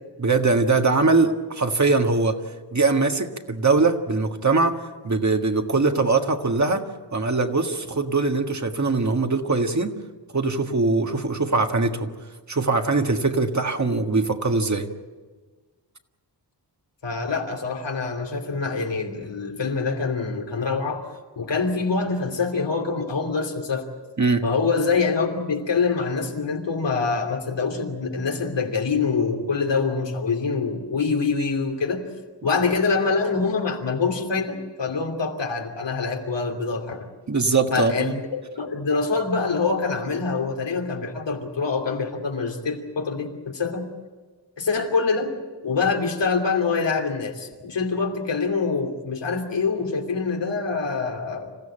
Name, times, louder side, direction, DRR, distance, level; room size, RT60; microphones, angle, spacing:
voice 1, 0.2-2.4 2.7-6.8 7.1-9.9 10.3-12.1 12.5-14.9 24.2-24.4 37.3-38.1, right 3 dB, 40° right, 5 dB, 1.7 m, -22 dB
voice 2, 17.0-21.0 21.4-23.8 24.4-32.0 32.4-37.1 37.7-43.9 44.6-45.3 45.6-51.5, left 4 dB, 85° left, 2 dB, 3.0 m, -25 dB
26.5 x 15.5 x 8.9 m, 1.4 s
wide cardioid pair, 95°, 42 cm